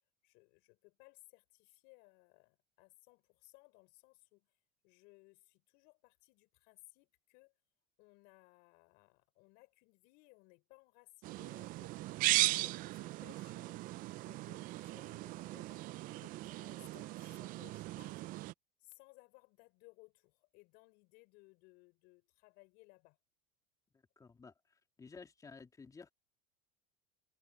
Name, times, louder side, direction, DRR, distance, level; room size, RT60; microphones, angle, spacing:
voice 1, 0.2-4.5 4.8-7.6 8.0-13.9 14.2-18.2 18.8-23.2, left 27 dB, 65° left, 6.2 m, -63 dB
sound 1, 11.2-18.5, right 19 dB, 50° right, 0.6 m, -37 dB
voice 2, 24.2-26.1, left 4 dB, 20° left, 3.1 m, -54 dB
supercardioid pair, 100°, 18 cm